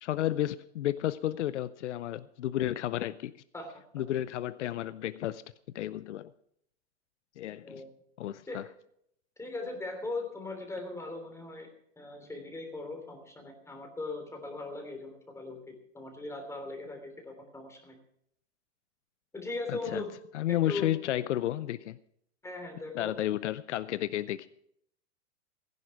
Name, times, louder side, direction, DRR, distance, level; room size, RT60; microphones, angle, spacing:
voice 1, 0.0-3.3 3.9-5.4 5.7-6.3 7.4-7.8 8.2-8.6 19.7-20.0 20.3-22.0 23.0-24.5, left 13 dB, 90° left, 16 dB, 0.6 m, -32 dB
voice 2, 9.4-11.7 12.0-18.0 19.3-20.1 20.5-20.9 22.4-23.1, left 2 dB, 10° left, 4 dB, 3.2 m, -39 dB
15.5 x 11.0 x 5.8 m, 0.72 s
hypercardioid pair, 130°, 34 cm